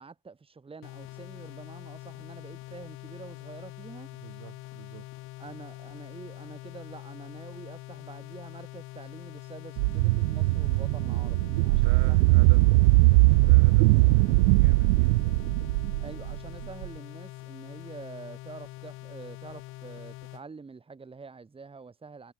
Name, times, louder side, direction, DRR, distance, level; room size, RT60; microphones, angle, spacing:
voice 1, 0.0-4.1 5.4-12.6 16.0-22.3, right 4 dB, 10° right, 4.4 m, -46 dB
sound 1, 0.8-20.4, left 19 dB, 30° left, 0.5 m, -44 dB
voice 2, 4.1-5.1 11.7-12.6 13.3-15.2, right 25 dB, 50° right, 8.0 m, -46 dB
sound 2, 9.8-16.9, right 26 dB, 75° right, 0.5 m, -21 dB
supercardioid pair, 155°, 47 cm